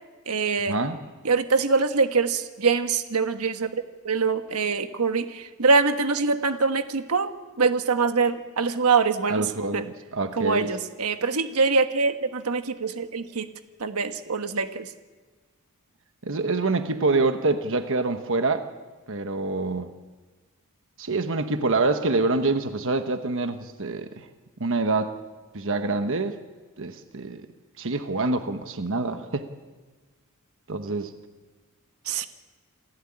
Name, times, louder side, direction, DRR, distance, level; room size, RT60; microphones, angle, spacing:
voice 1, 0.3-0.8 1.2-9.8 10.3-13.5 13.8-14.9 32.0-32.3, right 4 dB, 80° right, 8 dB, 1.4 m, -24 dB
voice 2, 9.3-9.9 10.1-10.7 16.2-18.6 19.1-19.9 21.0-24.3 24.6-25.1 25.5-26.4 26.8-27.4 27.8-29.5 30.7-31.1, right 3 dB, 60° right, 8 dB, 1.2 m, -26 dB
28.0 x 16.0 x 8.8 m, 1.3 s
head